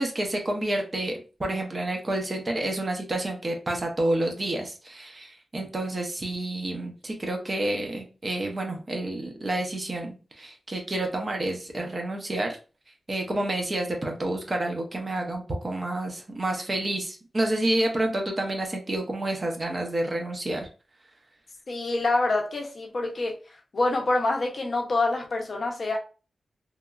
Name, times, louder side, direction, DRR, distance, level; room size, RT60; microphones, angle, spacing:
voice 1, 0.0-12.6 13.1-20.7, right 1 dB, 30° right, 2 dB, 0.5 m, -29 dB
voice 2, 21.7-23.4 23.7-26.0, left 2 dB, 45° left, 1 dB, 0.5 m, -26 dB
2.9 x 2.3 x 2.2 m, 0.34 s
wide cardioid pair, 170°, 0 cm